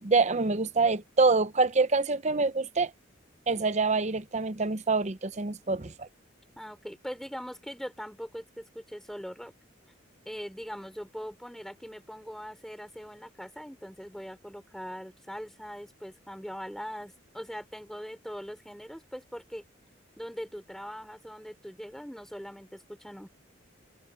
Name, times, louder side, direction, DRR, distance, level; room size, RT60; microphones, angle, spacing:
voice 1, 0.0-2.9 3.5-6.1, right 3 dB, 35° right, 0.7 m, -26 dB
voice 2, 6.6-9.5 10.2-19.6 20.2-23.3, equal, ahead, 5.0 m, -41 dB
head